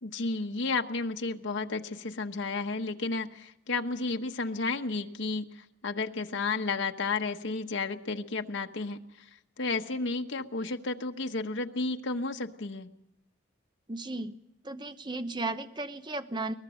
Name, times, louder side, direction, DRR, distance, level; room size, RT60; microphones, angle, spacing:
voice 1, 0.0-9.0 9.6-12.9, left 3 dB, 80° left, 4 dB, 1.1 m, -32 dB
voice 2, 13.9-14.3 14.6-16.5, right 2 dB, 25° right, 10 dB, 0.9 m, -35 dB
22.0 x 19.5 x 6.4 m, 0.88 s
head